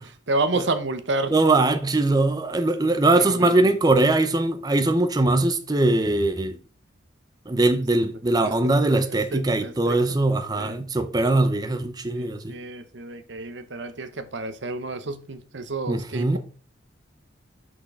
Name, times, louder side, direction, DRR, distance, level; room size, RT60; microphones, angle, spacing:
voice 1, 0.3-1.3 3.1-3.7 8.4-8.6 9.1-10.2 10.5-10.8 12.1-16.4, right 2 dB, 70° right, 0.9 m, -30 dB
voice 2, 1.3-6.6 7.5-12.5 15.9-16.4, right 2 dB, 20° right, 0.6 m, -21 dB
6.1 x 6.1 x 3.6 m
head